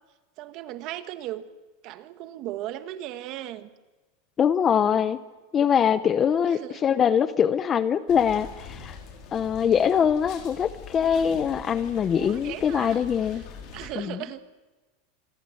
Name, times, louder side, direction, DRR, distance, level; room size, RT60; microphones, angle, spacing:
voice 1, 0.4-1.4 1.8-3.7 6.4-6.8 12.1-13.0 13.7-14.4, right 13 dB, 35° right, 11 dB, 1.5 m, -37 dB
voice 2, 4.4-5.2 5.5-8.9 9.3-13.5 14.0-14.2, left 8 dB, 20° left, 14 dB, 0.7 m, -23 dB
sound 1, 8.1-13.9, left 6 dB, 35° left, 4.4 m, -43 dB
27.5 x 21.5 x 7.8 m, 1.2 s
supercardioid pair, 175°, 0 cm